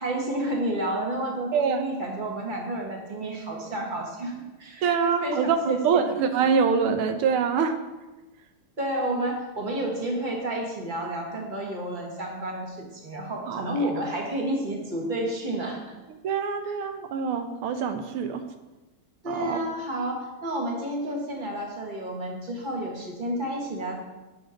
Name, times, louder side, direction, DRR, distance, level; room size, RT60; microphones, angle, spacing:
voice 1, 0.0-4.9 5.2-6.0 8.8-15.9 19.2-23.9, right 1 dB, 25° right, 0 dB, 1.6 m, -30 dB
voice 2, 4.8-7.8 13.5-13.6 16.2-18.4 19.3-19.6, right 6 dB, 85° right, 7 dB, 1.7 m, -25 dB
9.4 x 6.9 x 5.1 m, 1.1 s
omnidirectional pair, 2.4 m